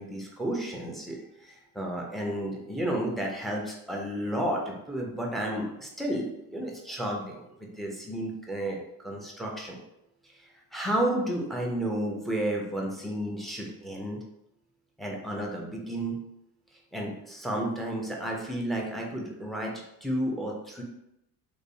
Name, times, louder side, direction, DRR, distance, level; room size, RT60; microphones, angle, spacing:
voice 1, 0.0-7.4 7.7-9.8 10.3-14.2 15.0-16.2 16.9-19.7 20.0-20.8, right 1 dB, ahead, -1 dB, 0.4 m, -32 dB
2.4 x 2.0 x 2.5 m, 0.84 s
hypercardioid pair, 65°, 47 cm